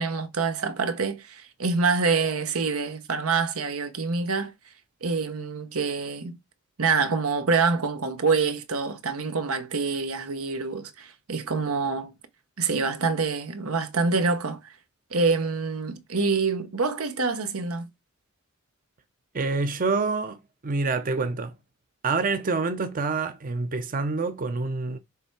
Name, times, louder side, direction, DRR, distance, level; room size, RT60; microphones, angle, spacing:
voice 1, 0.0-4.5 5.0-6.4 6.8-12.1 12.6-14.6 15.1-17.9, right 4 dB, 90° right, 1.1 m, -26 dB
voice 2, 19.3-21.5 22.0-25.0, right 3 dB, 40° right, 0.6 m, -27 dB
6.8 x 3.4 x 4.7 m
head